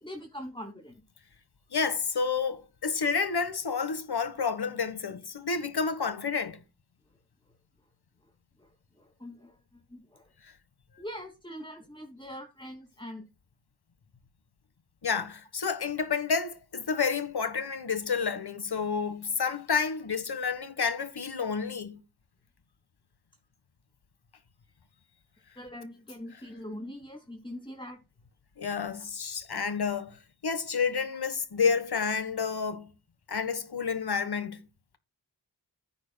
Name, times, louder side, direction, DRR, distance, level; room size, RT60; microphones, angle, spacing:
voice 1, 0.0-1.0 8.6-8.7 9.0-9.5 9.9-10.3 11.0-13.2 25.6-28.0, equal, 10° left, 2.5 m, -42 dB
voice 2, 1.7-6.6 15.0-22.0 28.6-30.2 30.4-32.9 33.3-34.6, left 5 dB, 65° left, 1.6 m, -30 dB
14.5 x 9.4 x 2.3 m
cardioid pair, 50°, 41 cm